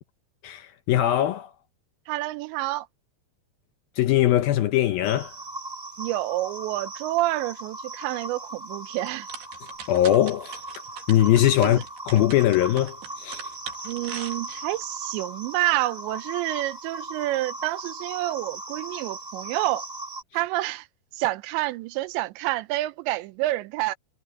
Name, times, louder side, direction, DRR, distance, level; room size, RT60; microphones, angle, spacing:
voice 1, 0.4-1.5 4.0-5.3 9.9-10.6 11.1-13.5, left 12 dB, 75° left, 2.2 m, -21 dB
voice 2, 2.1-2.9 6.0-9.3 11.6-11.8 13.8-19.9 20.3-20.9 21.1-24.0, right 17 dB, 85° right, 3.1 m, -28 dB
sound 1, 5.0-20.2, right 2 dB, 10° right, 7.9 m, -38 dB
sound 2, 9.0-14.8, right 7 dB, 65° right, 5.0 m, -41 dB
omnidirectional pair, 5.1 m